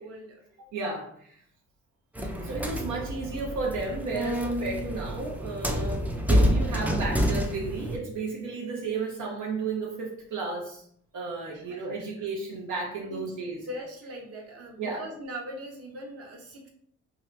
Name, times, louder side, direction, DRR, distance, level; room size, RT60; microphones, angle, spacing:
voice 1, 0.0-0.7 11.5-12.3 13.0-13.2 13.7-16.7, equal, 50° right, 0 dB, 0.9 m, -41 dB
voice 2, 0.7-1.4 2.4-10.8 11.1-13.6 14.8-15.1, right 3 dB, 75° right, -2 dB, 0.7 m, -33 dB
sound 1, 2.1-8.0, equal, 5° right, 0.4 m, -28 dB
2.7 x 2.4 x 3.2 m, 0.66 s
cardioid pair, 90°, 30 cm